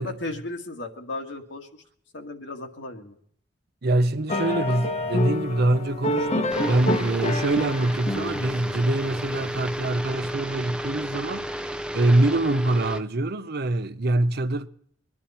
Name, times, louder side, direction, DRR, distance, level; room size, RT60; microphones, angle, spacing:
voice 1, 0.0-1.8 2.1-3.2, left 2 dB, 70° left, 1.8 m, -35 dB
voice 2, 3.8-11.5 11.9-14.7, right 2 dB, 60° right, 0.7 m, -24 dB
sound 1, 4.3-9.6, left 1 dB, 35° left, 1.0 m, -28 dB
sound 2, 6.5-13.0, equal, 5° right, 0.6 m, -33 dB
23.5 x 11.0 x 4.3 m
head